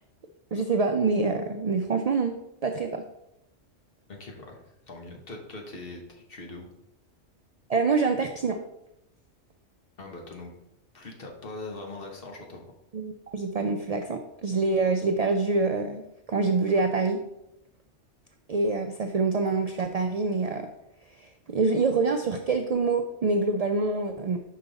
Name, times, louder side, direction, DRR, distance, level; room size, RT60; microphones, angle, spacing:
voice 1, 0.5-2.4 2.6-3.0 7.7-8.6 12.9-16.0 16.3-17.2 18.5-20.7 21.2-24.4, right 4 dB, 75° right, 5 dB, 0.3 m, -26 dB
voice 2, 4.1-6.7 10.0-10.5 10.9-12.6, left 2 dB, 50° left, 1 dB, 1.3 m, -41 dB
5.5 x 5.2 x 4.0 m, 0.83 s
omnidirectional pair, 1.2 m